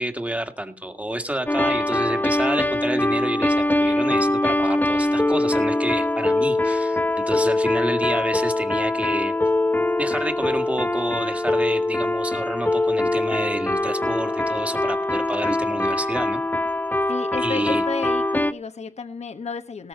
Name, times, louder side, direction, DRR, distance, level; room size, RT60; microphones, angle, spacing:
voice 1, 0.0-9.4 10.0-16.4 17.4-17.8, right 1 dB, 10° right, 1.9 m, -29 dB
sound 1, 1.5-18.5, left 2 dB, 15° left, 0.9 m, -23 dB
voice 2, 17.1-19.9, left 4 dB, 60° left, 1.2 m, -32 dB
18.5 x 6.4 x 5.4 m
cardioid pair, 70°, 13 cm